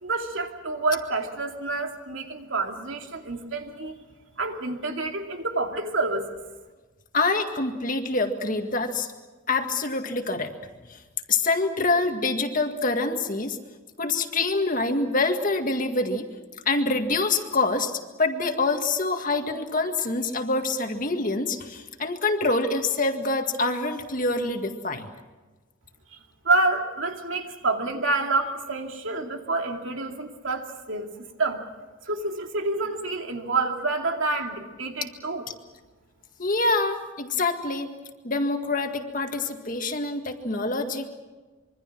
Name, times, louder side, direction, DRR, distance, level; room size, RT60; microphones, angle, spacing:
voice 1, 0.0-4.0 4.4-6.4 26.4-31.1 31.4-31.6 32.1-35.4, right 3 dB, 75° right, 3 dB, 2.6 m, -28 dB
voice 2, 7.1-9.1 9.5-10.5 11.3-13.6 14.0-16.3 16.7-25.1 36.4-37.9 38.2-41.1, left 3 dB, 40° left, 5 dB, 1.9 m, -26 dB
26.0 x 23.5 x 6.1 m, 1.3 s
head